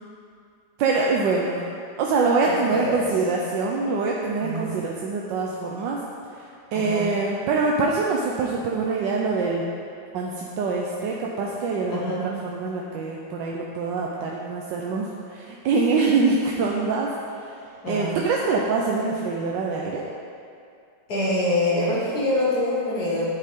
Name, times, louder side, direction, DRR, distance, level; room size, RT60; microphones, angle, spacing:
voice 1, 0.8-1.6 2.0-6.0 6.3-9.6 10.1-12.1 12.4-20.1, right 4 dB, 85° right, -2 dB, 1.4 m, -25 dB
voice 2, 2.5-3.1 4.4-4.8 6.7-7.1 11.9-12.3 17.8-18.2 21.1-23.2, left 1 dB, 60° left, -6 dB, 1.9 m, -25 dB
9.1 x 8.5 x 3.7 m, 2.4 s
omnidirectional pair, 1.9 m